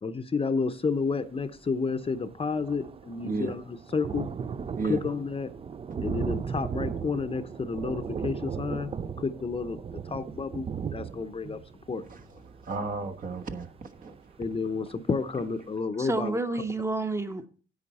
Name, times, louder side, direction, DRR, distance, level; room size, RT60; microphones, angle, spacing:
voice 1, 0.0-4.3 4.8-5.5 6.0-11.6 11.9-12.0 14.4-16.4, left 4 dB, 30° left, 0.8 m, -31 dB
Thunder, 1.6-1.7 1.9-14.5 15.0-15.1 15.4-15.5, right 6 dB, 30° right, 0.4 m, -37 dB
voice 2, 3.2-3.6 4.8-5.0 12.1-14.4, right 3 dB, 45° right, 1.2 m, -34 dB
voice 3, 16.0-17.5, right 2 dB, 15° right, 1.0 m, -30 dB
10.0 x 8.3 x 4.2 m
cardioid pair, 90°, 20 cm